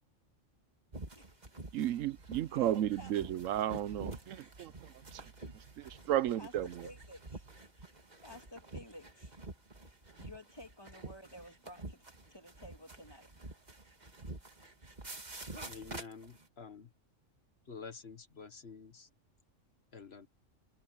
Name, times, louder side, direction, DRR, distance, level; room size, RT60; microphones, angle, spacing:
sound 1, 0.9-16.5, right 2 dB, 35° right, 2.2 m, -48 dB
voice 1, 1.1-1.5 2.5-2.7 3.0-3.1 6.4-7.5 7.9-8.0 8.2-9.3 10.2-13.3, left 1 dB, 20° left, 2.2 m, -53 dB
sound 2, 1.6-7.6, right 5 dB, 55° right, 1.5 m, -58 dB
voice 2, 1.7-6.9, right 12 dB, 80° right, 1.0 m, -34 dB
voice 3, 15.7-16.9 17.7-19.1 19.9-20.3, left 5 dB, 55° left, 1.6 m, -49 dB
omnidirectional pair, 1.3 m